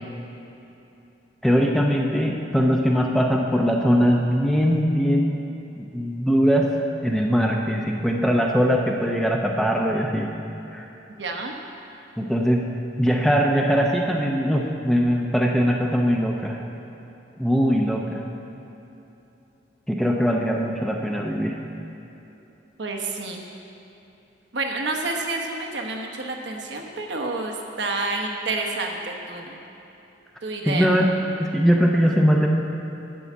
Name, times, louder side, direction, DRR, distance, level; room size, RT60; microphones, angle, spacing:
voice 1, 1.4-5.4 5.8-6.7 7.0-10.3 10.7-10.8 12.2-16.6 17.4-18.2 19.9-21.6 30.7-31.1 31.4-32.5, equal, ahead, 0 dB, 0.6 m, -21 dB
voice 2, 11.2-11.6 20.2-20.8 22.8-23.5 24.5-29.6 30.4-30.9, right 3 dB, 70° right, 2 dB, 1.1 m, -29 dB
11.0 x 4.8 x 8.2 m, 3.0 s
head